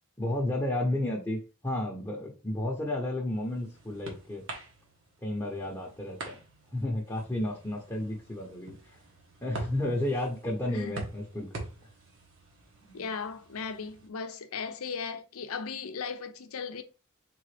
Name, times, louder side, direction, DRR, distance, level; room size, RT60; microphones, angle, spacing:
voice 1, 0.2-4.4 5.2-6.4 6.7-8.8 9.4-11.5 12.8-13.1, left 1 dB, 15° left, 0.8 m, -32 dB
sound 1, 3.0-14.1, right 2 dB, 60° right, 1.2 m, -45 dB
voice 2, 10.7-11.0 12.9-16.8, left 5 dB, 80° left, 0.6 m, -37 dB
3.8 x 3.7 x 3.3 m
head